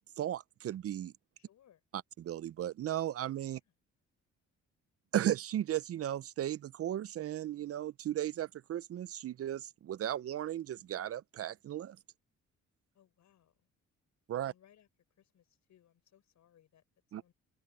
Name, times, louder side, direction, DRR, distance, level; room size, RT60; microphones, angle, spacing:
voice 1, 0.2-1.1 2.2-3.6 5.1-12.0 14.3-14.5 17.1-17.2, right 11 dB, 50° right, 0.5 m, -35 dB
voice 2, 1.4-1.8 3.5-3.7 12.9-13.7 14.4-17.3, left 10 dB, 70° left, 6.4 m, -67 dB
cardioid pair, 90°, 30 cm